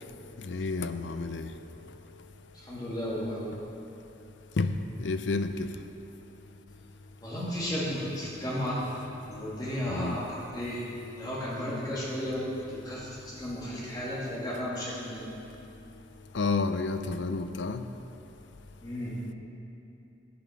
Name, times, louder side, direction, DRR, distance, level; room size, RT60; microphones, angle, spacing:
voice 1, 0.5-1.5 4.6-4.7 5.0-5.5 9.9-10.2 16.3-17.8, left 3 dB, 75° left, 10 dB, 0.5 m, -30 dB
voice 2, 2.5-3.4 7.2-8.9 9.2-10.9 11.2-15.3 18.8-19.2, equal, 20° left, -7 dB, 2.3 m, -34 dB
9.4 x 8.6 x 5.9 m, 2.8 s
head